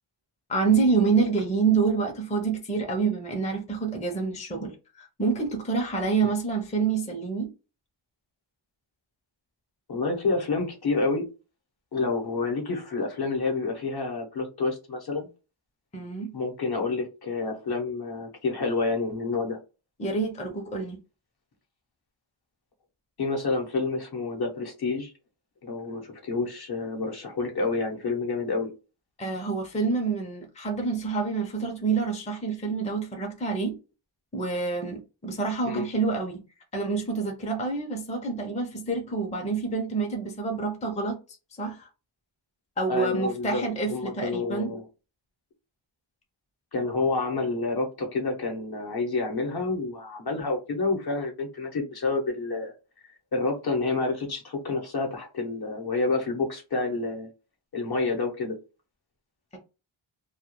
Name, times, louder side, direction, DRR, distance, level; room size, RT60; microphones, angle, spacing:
voice 1, 0.5-7.5 15.9-16.3 20.0-21.0 29.2-33.8 34.3-36.4 36.7-41.2 41.6-41.9 42.8-44.7, right 4 dB, 15° left, 0.5 m, -27 dB
voice 2, 9.9-11.2 11.9-15.3 16.3-19.6 23.2-25.1 25.6-28.7 35.6-35.9 42.9-43.6 43.9-44.8 46.7-52.7 53.3-57.3 57.7-58.5, left 3 dB, 50° left, 0.8 m, -28 dB
2.3 x 2.1 x 2.9 m
wide cardioid pair, 95°, 50 cm